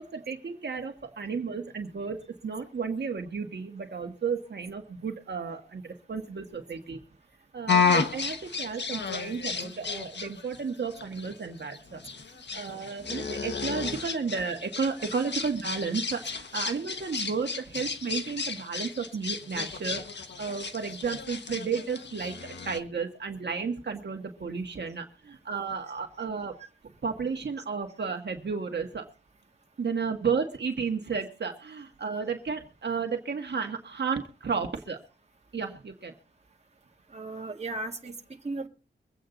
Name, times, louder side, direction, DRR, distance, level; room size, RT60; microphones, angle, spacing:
voice 1, 0.0-7.0 7.5-12.0 12.5-20.0 20.4-26.6 27.0-29.1 29.8-35.0 35.5-36.1, right 5 dB, 65° right, 3 dB, 1.5 m, -33 dB
sound 1, 7.7-22.8, left 5 dB, 65° left, 1.4 m, -32 dB
voice 2, 37.1-38.7, right 2 dB, 35° right, 2 dB, 2.0 m, -36 dB
23.5 x 8.7 x 3.9 m, 0.34 s
wide cardioid pair, 125°, 19 cm